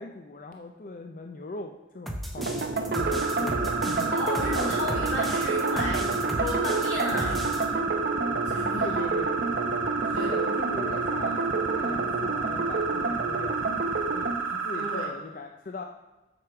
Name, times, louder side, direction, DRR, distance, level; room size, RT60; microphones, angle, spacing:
voice 1, 0.0-4.1 8.8-9.4 10.0-15.8, left 3 dB, 45° left, 4 dB, 0.5 m, -40 dB
sound 1, 2.1-7.6, equal, ahead, 0.7 m, -35 dB
sound 2, 2.4-14.4, right 3 dB, 60° right, 0.7 m, -29 dB
sound 3, 2.9-15.1, right 5 dB, 85° right, 1.1 m, -31 dB
voice 2, 4.1-7.7 8.4-9.0 10.1-10.3 14.7-15.1, left 1 dB, 75° left, -3 dB, 3.1 m, -33 dB
7.7 x 4.8 x 5.9 m, 1.1 s
head